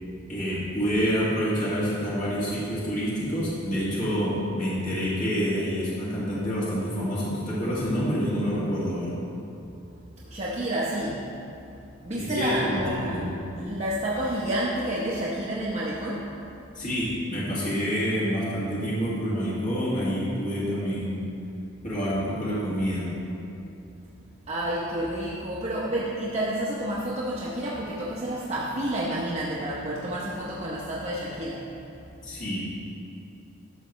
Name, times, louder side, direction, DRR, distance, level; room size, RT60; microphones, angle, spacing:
voice 1, 0.3-9.2 12.2-13.3 16.8-21.2 21.8-23.1 32.2-32.6, equal, 40° left, -8 dB, 1.9 m, -27 dB
voice 2, 10.3-11.2 12.0-13.3 13.6-16.2 24.5-31.6, right 1 dB, 35° right, -6 dB, 0.8 m, -29 dB
11.5 x 6.8 x 3.1 m, 2.7 s
head